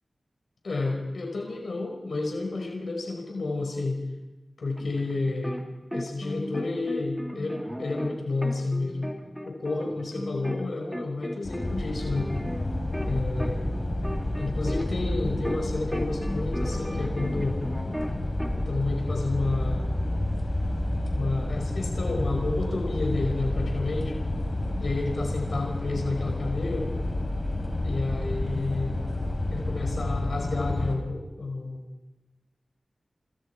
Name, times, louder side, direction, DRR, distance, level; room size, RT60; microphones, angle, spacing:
voice 1, 0.6-4.0 4.6-5.6 5.9-9.1 9.4-12.3 13.0-13.6 14.4-17.6 18.7-19.9 21.1-24.1 24.8-26.9 27.8-29.0 29.5-31.8, left 3 dB, 70° left, 1 dB, 5.0 m, -30 dB
sound 1, 4.8-5.6 5.9-10.6 10.9-15.7 15.9-18.6, equal, ahead, 2.9 m, -36 dB
sound 2, 11.4-31.0, left 1 dB, 35° left, 5.3 m, -30 dB
29.5 x 26.5 x 4.6 m, 1.1 s
wide cardioid pair, 85°, 0 cm